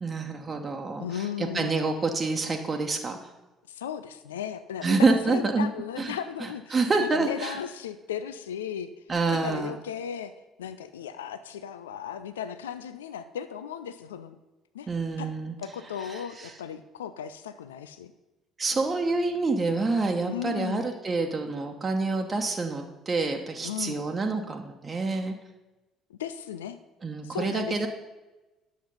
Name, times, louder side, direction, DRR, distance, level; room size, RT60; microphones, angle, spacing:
voice 1, 0.0-3.3 4.8-5.7 6.0-7.6 9.1-9.7 14.9-15.5 16.0-16.5 18.6-25.3 27.0-27.9, right 3 dB, 30° right, 3 dB, 1.1 m, -27 dB
voice 2, 1.0-2.1 3.7-5.0 5.3-8.9 9.3-14.4 14.7-14.9 15.2-15.3 15.6-18.1 20.3-20.9 23.6-24.0 26.1-26.8 27.2-27.9, left 9 dB, 75° left, 12 dB, 0.4 m, -36 dB
10.0 x 7.2 x 5.4 m, 1.1 s
figure-of-eight pair, 50°, 0 cm